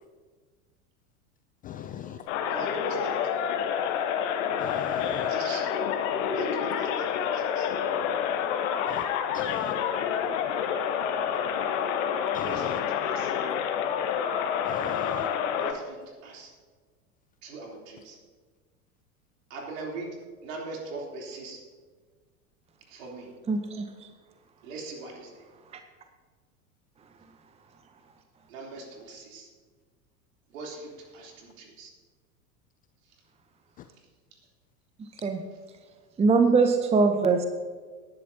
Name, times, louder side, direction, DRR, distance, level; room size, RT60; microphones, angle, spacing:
voice 1, 1.6-2.2 4.6-5.3 8.9-9.1 9.3-9.8 12.3-12.8 14.6-15.3 33.8-33.9, left 10 dB, 20° left, 0.4 m, -40 dB
sound 1, 2.3-15.7, left 8 dB, 55° left, 1.3 m, -28 dB
voice 2, 2.5-3.2 5.3-5.8 6.3-7.7 12.5-13.3 15.5-16.5 17.4-18.2 19.5-21.6 22.9-23.3 24.6-25.3 28.5-29.5 30.5-31.9, right 3 dB, 60° right, 3.6 m, -41 dB
voice 3, 23.5-23.9 35.2-35.4 36.2-37.5, right 4 dB, 15° right, 0.8 m, -22 dB
18.5 x 10.5 x 2.9 m
figure-of-eight pair, 85°, 44 cm